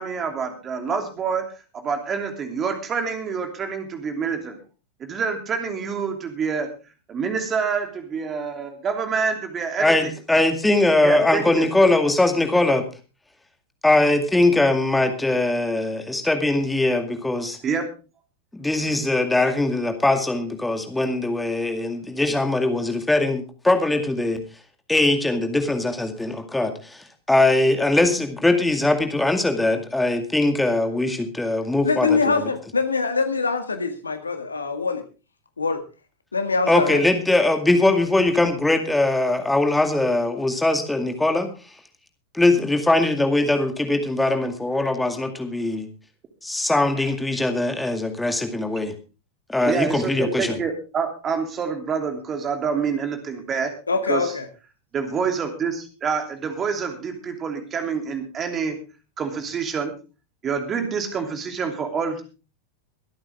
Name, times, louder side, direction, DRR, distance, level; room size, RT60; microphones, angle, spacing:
voice 1, 0.0-1.5 1.7-4.6 5.0-6.7 7.1-10.1 11.0-11.7 17.6-17.9 47.0-47.1 49.6-53.7 54.1-54.3 54.9-58.8 59.2-59.9 60.4-62.2, right 6 dB, 25° right, 6 dB, 2.8 m, -27 dB
voice 2, 9.8-12.9 13.8-17.6 18.5-24.4 24.9-32.5 36.7-41.5 42.3-45.9 46.4-48.9 49.5-50.6, left 2 dB, 5° left, 6 dB, 2.2 m, -21 dB
voice 3, 31.8-35.0 35.6-35.8 36.3-37.0 53.9-54.5, left 4 dB, 75° left, 8 dB, 1.7 m, -23 dB
23.5 x 8.9 x 3.6 m, 0.32 s
figure-of-eight pair, 90°, 0 cm